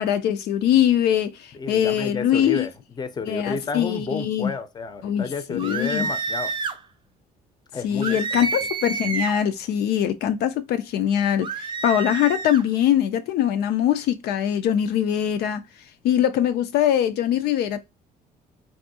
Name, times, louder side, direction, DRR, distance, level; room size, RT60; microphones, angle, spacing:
voice 1, 0.0-2.7 3.3-4.5 5.0-6.1 7.8-15.6 16.0-17.8, left 10 dB, 70° left, 0.4 m, -22 dB
voice 2, 1.5-6.5 7.7-8.5, left 4 dB, 25° left, 0.5 m, -31 dB
sound 1, 5.6-6.8 8.0-9.4 11.4-12.6, right 5 dB, 30° right, 0.5 m, -29 dB
3.5 x 2.6 x 2.7 m
cardioid pair, 110°, 17 cm